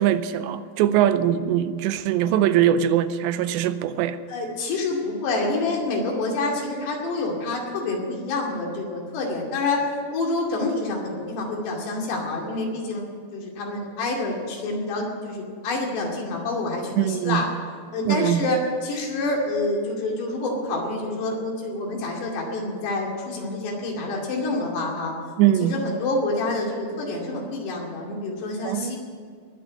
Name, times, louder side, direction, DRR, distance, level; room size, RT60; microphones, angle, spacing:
voice 1, 0.0-4.2 17.0-17.4 18.1-18.5 25.4-25.7 28.6-29.0, right 11 dB, 90° right, 12 dB, 2.9 m, -21 dB
voice 2, 4.3-17.5 17.9-25.1 25.6-29.0, left 2 dB, 70° left, -1 dB, 4.6 m, -27 dB
20.5 x 6.8 x 9.4 m, 2.1 s
omnidirectional pair, 5.0 m